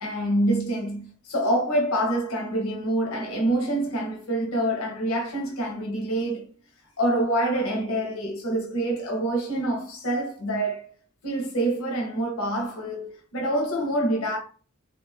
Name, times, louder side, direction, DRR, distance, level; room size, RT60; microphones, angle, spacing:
voice 1, 0.0-6.5 7.0-10.9 11.2-14.4, right 1 dB, 85° left, 0.7 m, -26 dB
3.1 x 2.2 x 2.3 m
head